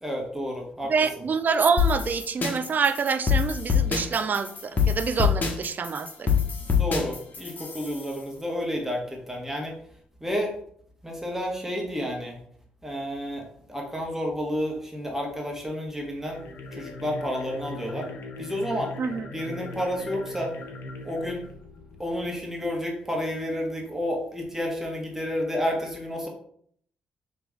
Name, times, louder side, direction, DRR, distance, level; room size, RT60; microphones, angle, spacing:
voice 1, 0.0-0.9 6.7-9.7 10.2-10.5 11.0-12.3 12.8-13.4 13.7-16.4 16.7-18.1 18.4-18.9 19.3-20.5 21.0-21.5 22.0-26.3, equal, 10° right, -1 dB, 1.4 m, -30 dB
voice 2, 0.9-6.3 19.0-19.3, right 5 dB, 45° right, 11 dB, 0.4 m, -26 dB
sound 1, 1.8-8.1, left 7 dB, 45° left, 1.1 m, -25 dB
sound 2, 16.2-22.5, left 2 dB, 65° left, 0.7 m, -40 dB
3.4 x 3.0 x 3.6 m, 0.64 s
hypercardioid pair, 45°, 4 cm